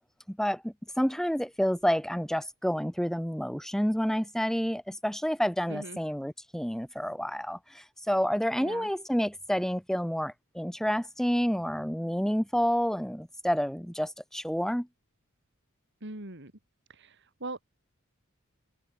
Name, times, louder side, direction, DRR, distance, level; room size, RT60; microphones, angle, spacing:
voice 1, 0.3-14.9, equal, ahead, 1.6 m, -29 dB
voice 2, 5.7-6.0 8.6-8.9 16.0-16.5 16.9-17.6, right 2 dB, 55° right, 3.5 m, -41 dB
head